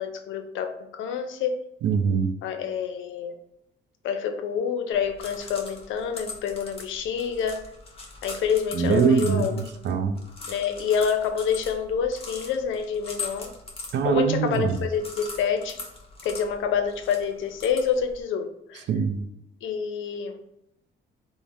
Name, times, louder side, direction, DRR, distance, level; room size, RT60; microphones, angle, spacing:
voice 1, 0.0-1.6 2.4-3.3 4.0-7.7 8.2-9.6 10.5-13.5 14.0-15.8 16.2-18.9 19.6-20.4, left 7 dB, 75° left, 7 dB, 0.4 m, -27 dB
voice 2, 1.8-2.3 8.7-10.2 13.9-14.8 18.9-19.2, right 6 dB, 65° right, 7 dB, 0.4 m, -23 dB
sound 1, 4.9-18.2, left 3 dB, 30° left, 0.7 m, -41 dB
3.2 x 2.0 x 2.6 m, 0.83 s
cardioid pair, 90°, 20 cm